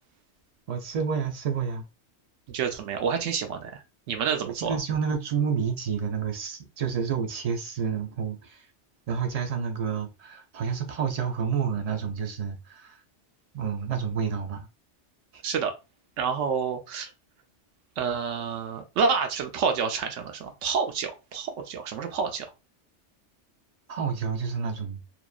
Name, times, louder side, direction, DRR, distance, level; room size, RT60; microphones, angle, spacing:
voice 1, 0.7-1.8 4.5-8.6 9.1-13.0 13.5-14.7 15.3-15.4 23.9-25.0, right 6 dB, 65° right, 0.4 m, -29 dB
voice 2, 2.5-4.8 15.4-15.7 16.2-17.1 18.0-22.5, right 6 dB, 85° right, 1.0 m, -28 dB
2.8 x 2.2 x 2.2 m
omnidirectional pair, 1.2 m